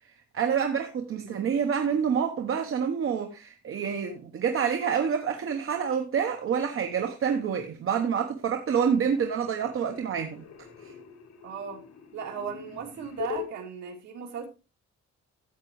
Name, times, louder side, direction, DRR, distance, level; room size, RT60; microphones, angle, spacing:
voice 1, 0.3-10.4 10.8-10.9, right 7 dB, 45° right, 1.1 m, -27 dB
sound 1, 7.7-8.0 8.3-13.5, left 10 dB, 60° left, 2.5 m, -43 dB
voice 2, 11.4-11.8 12.1-14.5, right 7 dB, 70° right, 2.8 m, -37 dB
14.0 x 8.3 x 3.1 m
cardioid pair, 175°, 29 cm